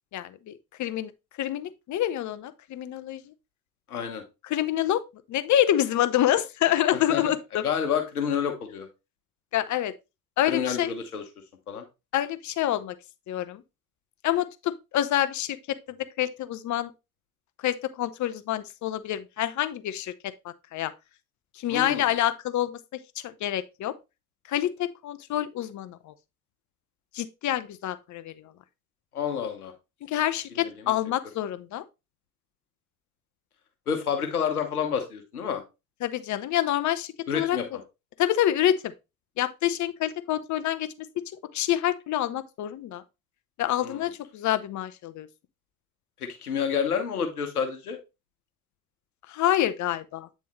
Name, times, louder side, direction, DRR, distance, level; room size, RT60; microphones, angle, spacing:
voice 1, 0.1-1.1 1.4-3.3 4.4-5.0 5.3-7.6 9.5-9.9 10.4-10.9 12.1-13.0 13.3-13.6 14.2-16.9 17.6-20.9 21.6-22.8 23.2-23.9 24.5-26.1 27.1-28.3 30.1-31.8 36.0-37.6 38.2-38.9 39.4-40.9 41.5-43.0 43.6-45.3 49.3-50.3, left 12 dB, 45° left, 0.6 m, -27 dB
voice 2, 3.9-4.2 6.9-7.2 7.6-8.9 10.5-11.2 11.7-11.8 21.7-22.1 29.1-29.7 30.6-30.9 33.9-35.6 37.3-37.6 43.8-44.0 46.2-48.0, left 7 dB, 90° left, 1.0 m, -29 dB
8.4 x 3.6 x 3.1 m
hypercardioid pair, 55°, 43 cm